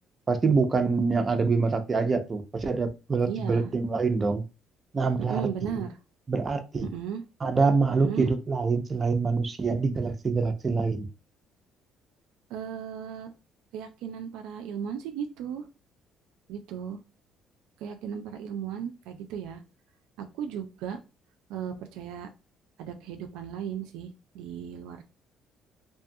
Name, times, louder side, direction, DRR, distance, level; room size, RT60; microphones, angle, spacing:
voice 1, 0.3-4.4 4.9-5.4 6.3-6.9 7.4-11.1, right 4 dB, 30° right, 0.5 m, -25 dB
voice 2, 3.3-3.7 5.2-5.9 6.8-7.2 7.9-8.3 12.5-13.3 13.7-15.7 16.5-17.0 17.8-19.6 20.2-21.0 21.5-22.3 22.8-25.0, right 8 dB, 90° right, 0.3 m, -36 dB
2.6 x 2.3 x 2.6 m
cardioid pair, 100°, 0 cm